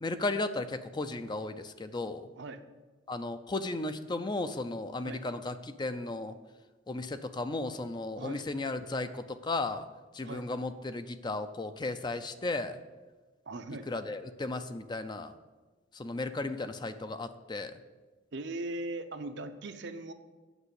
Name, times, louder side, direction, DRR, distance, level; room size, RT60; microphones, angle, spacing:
voice 1, 0.0-2.3 3.1-6.3 6.9-9.9 10.1-12.8 13.9-15.3 15.9-17.7, left 2 dB, 25° left, 10 dB, 0.4 m, -35 dB
voice 2, 13.5-13.9 18.3-20.1, right 2 dB, 60° right, 8 dB, 0.7 m, -39 dB
8.1 x 6.2 x 8.0 m, 1.3 s
head